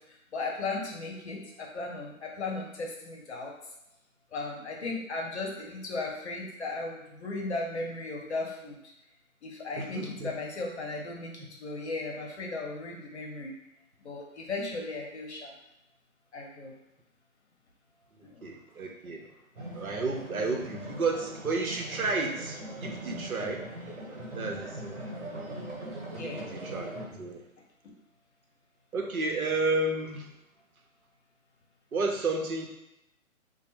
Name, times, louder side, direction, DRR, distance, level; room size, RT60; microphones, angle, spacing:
voice 1, 0.0-3.5 4.3-8.8 9.4-13.5 14.0-15.5 16.3-16.8 18.2-18.5 26.1-26.5 27.8-27.9, left 3 dB, 50° left, -1 dB, 0.8 m, -36 dB
voice 2, 9.8-10.3 18.4-19.3 19.7-23.7 24.3-25.0 26.2-27.4 28.9-30.3 31.9-32.7, right 3 dB, 85° right, 2 dB, 0.7 m, -32 dB
sound 1, 19.6-27.1, right 1 dB, 55° right, 1.0 m, -40 dB
3.3 x 2.1 x 3.0 m, 0.90 s
figure-of-eight pair, 140°, 42 cm